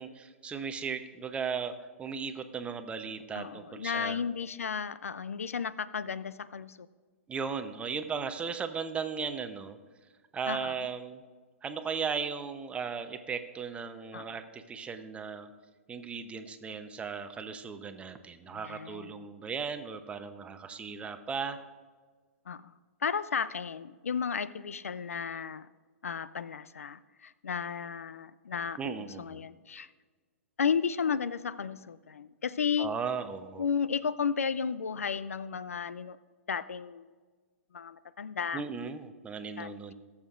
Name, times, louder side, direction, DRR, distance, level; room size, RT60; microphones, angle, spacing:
voice 1, 0.0-1.7 2.0-4.2 7.3-9.8 10.3-11.2 11.6-15.5 15.9-21.6 28.8-29.4 32.8-33.7 38.5-39.9, right 6 dB, 15° right, 9 dB, 0.7 m, -36 dB
voice 2, 3.3-6.9 10.5-10.9 14.1-14.4 18.5-19.3 22.5-22.7 23.0-25.7 26.0-29.9 30.6-32.9 33.6-36.2 36.5-37.1 37.7-38.6 39.6-39.7, left 6 dB, 85° left, 16 dB, 0.4 m, -33 dB
19.0 x 7.2 x 2.5 m, 1.5 s
hypercardioid pair, 120°, 7 cm